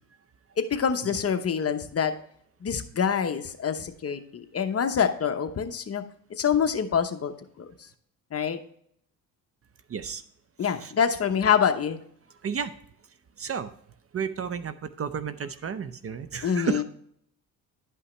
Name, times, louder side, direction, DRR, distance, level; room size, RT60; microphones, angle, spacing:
voice 1, 0.6-2.1 2.6-6.0 6.3-7.7 8.3-8.6 10.6-12.0 16.4-16.8, left 7 dB, 40° left, 7 dB, 0.9 m, -26 dB
voice 2, 9.9-10.2 10.6-10.9 12.4-12.7 13.4-13.7 14.1-16.8, right 6 dB, 40° right, 13 dB, 0.6 m, -32 dB
11.0 x 5.6 x 3.2 m, 0.66 s
cardioid pair, 90°, 37 cm